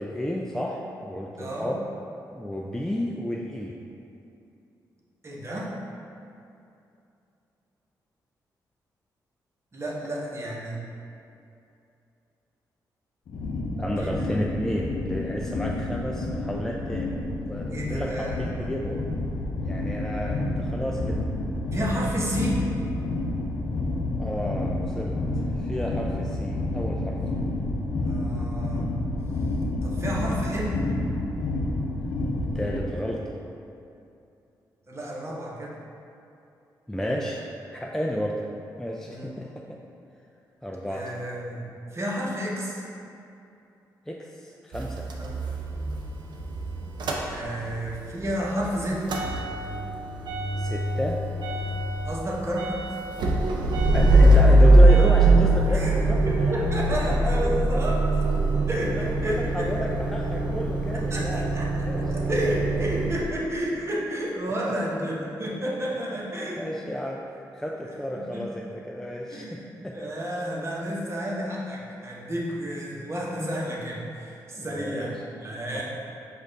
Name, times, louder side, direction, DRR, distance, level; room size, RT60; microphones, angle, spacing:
voice 1, 0.0-1.8 2.3-3.8 13.8-17.2 17.5-19.0 19.6-21.2 24.2-27.2 28.4-28.5 32.5-33.4 36.9-37.4 37.7-38.4 38.8-39.8 40.6-41.1 44.1-45.1 50.6-51.2 53.9-56.6 57.0-57.3 58.9-61.4 61.9-62.3 66.6-70.0 74.5-75.0 75.7-75.8, equal, 5° left, -2 dB, 0.3 m, -32 dB
voice 2, 1.4-1.7 5.2-5.7 9.7-10.8 14.0-14.3 17.7-18.7 21.7-22.6 28.1-28.9 29.8-30.9 34.9-35.7 39.1-39.3 40.9-42.8 45.2-45.3 47.3-49.1 52.0-52.8 55.7-55.9 56.5-58.3 58.7-59.7 60.9-61.7 62.1-66.7 68.1-68.5 69.3-75.1 75.4-75.8, equal, 35° right, -4 dB, 1.0 m, -31 dB
sound 1, 13.3-32.8, left 2 dB, 70° left, 0.6 m, -29 dB
Motor vehicle (road) / Engine starting / Idling, 44.7-47.9 48.2-63.2, right 1 dB, 70° right, 0.5 m, -22 dB
5.1 x 2.5 x 3.9 m, 2.7 s
cardioid pair, 60°, 8 cm